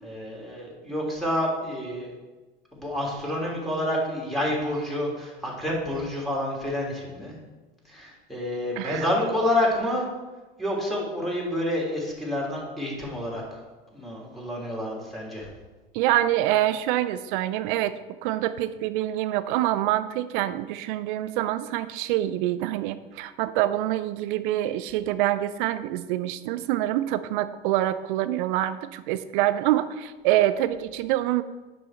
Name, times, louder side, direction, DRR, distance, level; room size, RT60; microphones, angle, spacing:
voice 1, 0.0-2.1 2.7-7.4 7.8-10.1 10.6-13.6 13.9-15.5, left 1 dB, ahead, -5 dB, 3.1 m, -28 dB
voice 2, 15.9-17.9 18.2-31.4, right 14 dB, 60° right, 13 dB, 0.6 m, -26 dB
9.8 x 5.5 x 4.4 m, 1.2 s
figure-of-eight pair, 75°, 29 cm